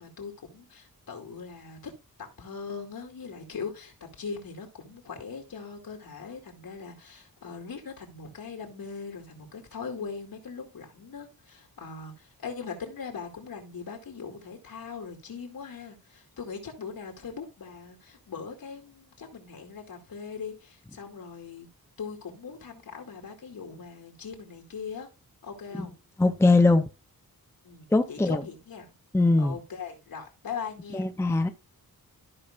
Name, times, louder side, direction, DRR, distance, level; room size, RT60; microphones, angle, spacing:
voice 1, 0.0-1.9 2.2-21.7 22.0-25.1 25.4-25.9 27.6-28.9 29.4-31.0, left 5 dB, 70° left, 2.4 m, -40 dB
voice 2, 26.2-26.8 27.9-28.4 29.1-29.5 30.9-31.5, left 2 dB, 5° left, 0.5 m, -21 dB
14.0 x 5.5 x 2.4 m
wide cardioid pair, 150°, 36 cm